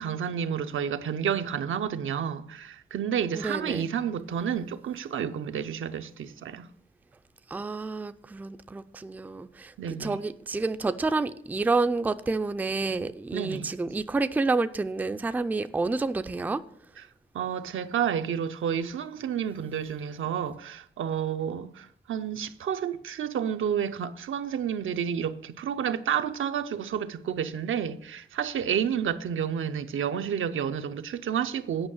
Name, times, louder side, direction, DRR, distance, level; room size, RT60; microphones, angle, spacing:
voice 1, 0.0-6.7 9.8-10.2 13.3-13.7 17.3-31.9, right 8 dB, 80° right, 0.6 m, -30 dB
voice 2, 3.3-3.9 7.5-16.6, right 3 dB, 10° right, 0.3 m, -29 dB
8.8 x 5.4 x 7.1 m
wide cardioid pair, 135°, 20 cm